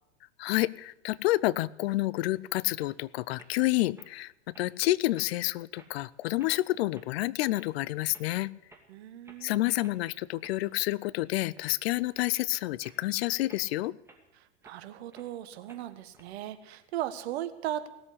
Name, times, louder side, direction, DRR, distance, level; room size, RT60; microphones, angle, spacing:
voice 1, 0.4-8.5 9.4-13.9, left 17 dB, 60° left, 21 dB, 0.6 m, -29 dB
sound 1, 2.8-3.0 3.3-3.6 4.0-4.1 4.5-4.7 5.1-5.5 5.8-5.9 6.4-6.6 6.9-7.1 7.5-7.7 8.1-8.3 8.6-8.9 9.2-9.4 9.8-10.0 10.4-11.0 11.4-11.7 12.2-12.3 12.8-13.0 13.5-14.8 15.1-15.3 15.7-16.2, right 2 dB, 5° right, 2.5 m, -56 dB
voice 2, 8.9-9.6 14.6-17.9, right 13 dB, 60° right, 10 dB, 1.5 m, -37 dB
17.5 x 7.9 x 9.8 m, 0.91 s
hypercardioid pair, 105°, 35 cm